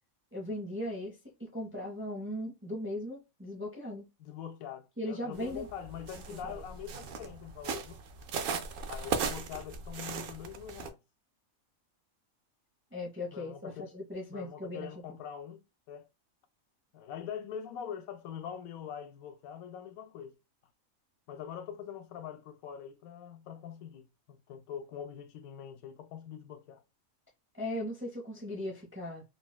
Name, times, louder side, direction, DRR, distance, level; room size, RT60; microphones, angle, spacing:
voice 1, 0.3-4.1 5.0-5.7 6.3-6.6 12.9-14.9 27.5-29.2, left 1 dB, 15° right, 0.5 m, -38 dB
voice 2, 4.2-8.0 8.9-11.0 13.3-13.9 14.3-16.1 16.9-20.3 21.3-26.8, left 8 dB, 85° left, 1.0 m, -43 dB
sound 1, 5.3-10.9, right 5 dB, 75° right, 0.5 m, -38 dB
3.9 x 2.2 x 2.2 m
omnidirectional pair, 1.5 m